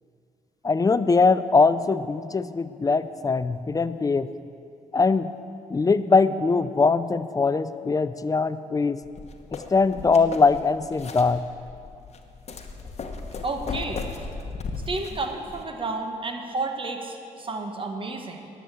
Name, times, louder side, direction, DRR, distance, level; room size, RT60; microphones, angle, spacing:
voice 1, 0.6-4.3 4.9-5.3 5.7-9.0 9.5-11.4, left 4 dB, 25° left, 13 dB, 0.5 m, -21 dB
sound 1, 9.0-15.6, left 4 dB, 45° left, 1.1 m, -36 dB
voice 2, 13.4-14.0 14.9-18.5, right 3 dB, 35° right, 4 dB, 1.5 m, -31 dB
10.5 x 7.3 x 8.3 m, 2.5 s
cardioid pair, 70°, 15 cm